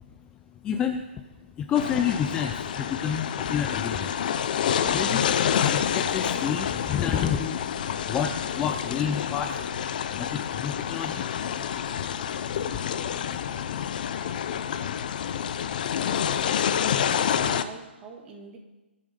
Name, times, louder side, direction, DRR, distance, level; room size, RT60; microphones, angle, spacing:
voice 1, 0.6-1.2 1.6-4.1 4.4-4.5 4.8-12.2 12.7-13.0 13.3-13.7, left 8 dB, 10° left, 6 dB, 0.5 m, -30 dB
sound 1, 1.7-17.6, left 8 dB, 45° left, 0.8 m, -28 dB
voice 2, 17.0-18.6, right 4 dB, 15° right, 1 dB, 2.0 m, -43 dB
22.5 x 7.6 x 5.3 m, 1.1 s
hypercardioid pair, 160°, 6 cm